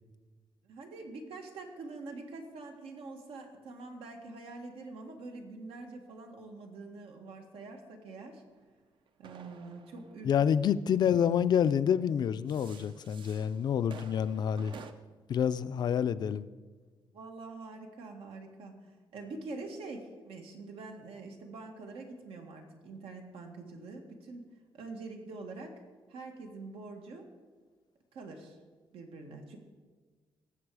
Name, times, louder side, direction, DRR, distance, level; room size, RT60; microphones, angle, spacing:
voice 1, 0.6-8.4 9.2-10.3 10.9-11.0 17.1-25.8 26.1-27.3 28.1-28.6 28.9-29.6, right 3 dB, 90° right, 1.7 m, -45 dB
sound 1, 8.6-11.3 12.2-14.9, right 6 dB, 60° right, 0.6 m, -52 dB
voice 2, 10.2-14.8 15.3-16.5, left 8 dB, 50° left, 0.4 m, -28 dB
18.5 x 7.3 x 4.8 m
wide cardioid pair, 170°, 9 cm